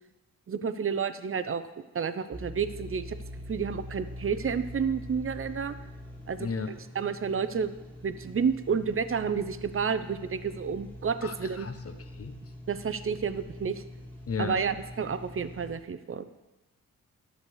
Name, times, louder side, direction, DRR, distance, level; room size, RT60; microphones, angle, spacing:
voice 1, 0.5-1.6 1.9-3.2 3.5-5.7 6.3-6.5 6.9-7.7 8.0-11.7 12.7-13.8 14.4-16.3, right 6 dB, 35° right, 12 dB, 0.7 m, -30 dB
sound 1, 2.3-15.8, left 1 dB, 5° left, 2.2 m, -44 dB
voice 2, 6.4-6.7 11.2-12.4 14.3-14.6, left 5 dB, 40° left, 8 dB, 1.2 m, -34 dB
11.0 x 6.7 x 4.8 m, 1.1 s
supercardioid pair, 50°, 37 cm